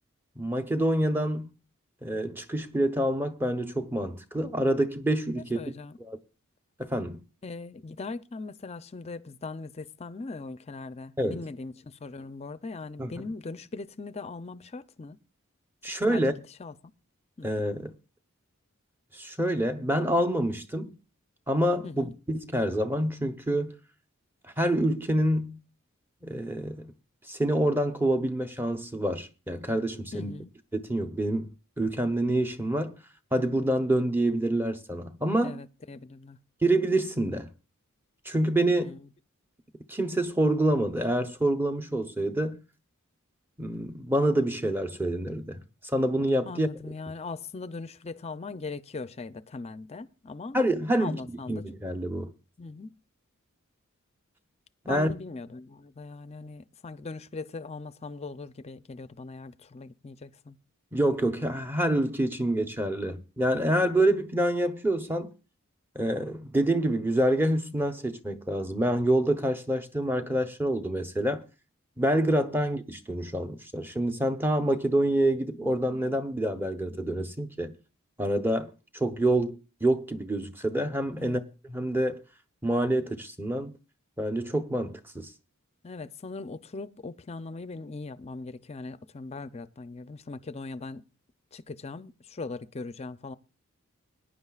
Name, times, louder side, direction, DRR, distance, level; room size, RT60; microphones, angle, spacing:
voice 1, 0.4-1.5 2.0-5.7 6.0-6.2 6.8-7.2 11.2-11.4 13.0-13.1 15.8-16.3 17.4-17.9 19.1-20.9 21.5-23.7 24.6-25.6 26.2-26.9 27.3-30.3 30.7-31.5 31.8-33.0 33.3-35.6 36.6-37.5 38.3-38.9 39.9-42.6 43.6-45.6 45.9-46.7 50.5-51.2 51.5-52.3 54.8-55.1 60.9-65.3 65.9-71.4 72.0-77.7 78.2-82.2 82.6-83.8 84.2-85.3, right 1 dB, 10° right, 0.8 m, -27 dB
voice 2, 5.4-6.0 7.4-15.2 16.1-16.2 16.6-16.9 17.4-17.5 21.8-22.1 30.1-30.5 35.4-36.4 38.7-39.1 46.5-50.6 51.0-51.7 52.6-53.0 54.9-60.6 81.2-81.4 85.8-91.0 91.5-93.4, left 3 dB, 30° left, 0.5 m, -40 dB
21.0 x 10.0 x 2.4 m
head